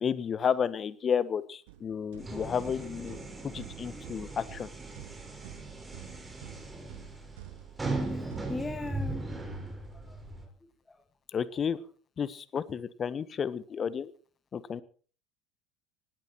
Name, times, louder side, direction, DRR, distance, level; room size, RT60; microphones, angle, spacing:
voice 1, 0.0-4.7 11.3-11.8 12.2-14.1 14.5-14.8, left 7 dB, 35° left, 17 dB, 1.4 m, -32 dB
sound 1, 1.7-9.7, right 14 dB, 65° right, 2.7 m, -50 dB
sound 2, 2.2-10.5, right 2 dB, 15° right, 5.6 m, -38 dB
voice 2, 8.1-10.2 10.9-11.0, left 2 dB, 15° left, 8 dB, 2.0 m, -41 dB
19.0 x 15.5 x 4.5 m, 0.41 s
figure-of-eight pair, 70°, 0 cm